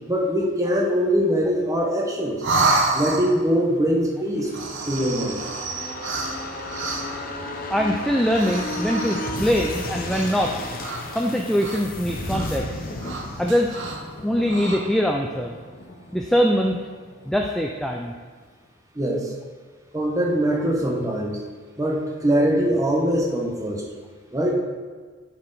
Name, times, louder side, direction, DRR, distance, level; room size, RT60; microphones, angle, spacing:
voice 1, 0.1-2.4 2.9-4.5 4.9-5.4 6.0-6.1 18.9-19.3 19.9-21.4 21.8-23.8 24.3-24.5, equal, 15° right, -2 dB, 1.0 m, -22 dB
sound 1, 2.4-3.5 4.4-7.3 8.3-9.4 10.0-10.5 10.8-12.0 12.3-12.5 13.0-14.1 14.4-14.8, right 3 dB, 55° right, 0.8 m, -28 dB
sound 2, 4.3-17.8 18.1-18.2, left 2 dB, 40° left, 0.7 m, -34 dB
voice 2, 7.7-10.6 11.1-12.7 13.4-13.8 14.2-15.5 16.1-16.8 17.3-18.1, equal, ahead, 0 dB, 0.3 m, -22 dB
10.5 x 4.6 x 4.0 m, 1.5 s
head